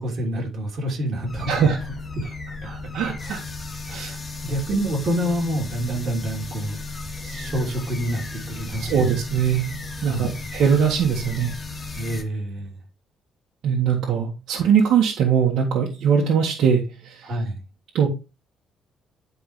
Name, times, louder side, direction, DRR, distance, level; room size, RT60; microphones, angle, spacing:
voice 1, 0.0-1.7 2.1-2.2 3.2-3.4 4.4-6.8 7.2-9.1 10.0-10.4 11.9-12.8 17.2-17.6, equal, 45° right, 3.3 m, -27 dB
sound 1, 1.3-12.2, left 3 dB, 20° left, 1.1 m, -35 dB
voice 2, 2.7-3.4 3.9-4.2 8.8-9.6 10.0-11.5 13.6-16.8 17.9-18.1, right 7 dB, 70° right, 1.8 m, -21 dB
11.0 x 4.9 x 3.3 m
cardioid pair, 170°, 0 cm